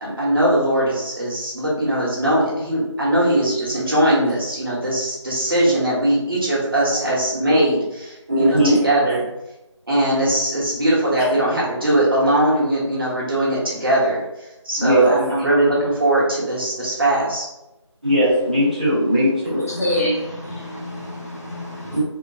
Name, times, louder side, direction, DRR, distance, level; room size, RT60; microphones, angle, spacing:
voice 1, 0.0-9.2 9.9-17.4, right 1 dB, 45° right, -6 dB, 1.3 m, -20 dB
voice 2, 8.3-8.8 14.8-15.3 18.0-19.7 21.9-22.0, right 1 dB, 15° right, -12 dB, 0.9 m, -18 dB
voice 3, 19.5-22.0, left 1 dB, 30° left, -5 dB, 0.8 m, -27 dB
3.7 x 2.1 x 3.7 m, 0.95 s
figure-of-eight pair, 175°, 16 cm